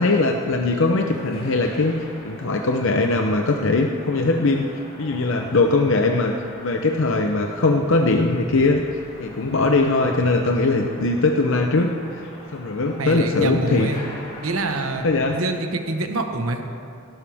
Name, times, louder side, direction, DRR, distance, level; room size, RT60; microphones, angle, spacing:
voice 1, 0.0-6.3 6.6-8.8 9.2-12.2 12.5-13.9 15.0-15.4, left 3 dB, 65° left, 3 dB, 0.7 m, -20 dB
sound 1, 0.8-15.3, left 1 dB, 45° left, 3.3 m, -42 dB
voice 2, 13.0-14.0 14.4-15.1 15.3-16.6, right 2 dB, 80° right, 5 dB, 1.2 m, -25 dB
17.0 x 12.0 x 3.5 m, 2.4 s
head